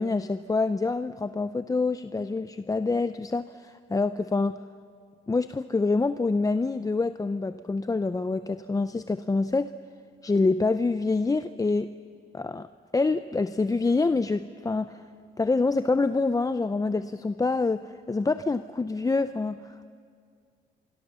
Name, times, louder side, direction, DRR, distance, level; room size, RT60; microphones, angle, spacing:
voice 1, 0.0-4.6 5.3-9.7 10.2-11.9 12.3-12.7 12.9-15.0 15.4-19.9, left 3 dB, 15° left, 12 dB, 0.6 m, -26 dB
25.5 x 24.5 x 6.9 m, 2.3 s
cardioid pair, 90°, 20 cm